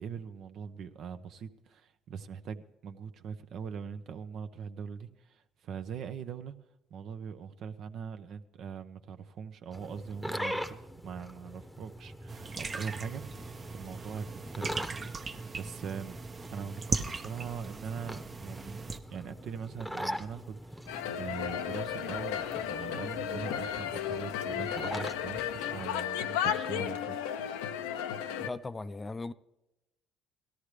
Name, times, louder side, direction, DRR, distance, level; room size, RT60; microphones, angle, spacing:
voice 1, 0.0-6.6 6.9-16.2 16.5-27.2, right 7 dB, 60° right, 0.8 m, -42 dB
sound 1, 9.7-25.9, equal, ahead, 1.0 m, -43 dB
sound 2, 12.3-19.0, right 4 dB, 35° right, 0.9 m, -38 dB
sound 3, 20.9-28.5, left 9 dB, 85° left, 0.6 m, -34 dB
voice 2, 28.4-29.3, left 3 dB, 25° left, 0.5 m, -38 dB
17.0 x 13.0 x 3.3 m
supercardioid pair, 65°, 0 cm